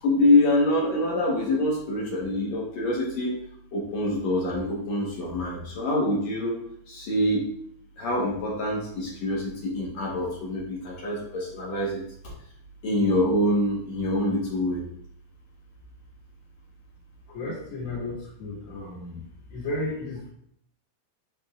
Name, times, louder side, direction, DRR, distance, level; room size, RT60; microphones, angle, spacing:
voice 1, 0.0-3.4 3.7-6.6 6.9-7.5 8.0-12.1 12.8-14.8, left 1 dB, 55° left, -4 dB, 2.2 m, -25 dB
voice 2, 17.3-19.2 19.5-20.3, left 2 dB, 80° left, -10 dB, 4.5 m, -33 dB
11.0 x 3.7 x 2.6 m, 0.68 s
omnidirectional pair, 4.8 m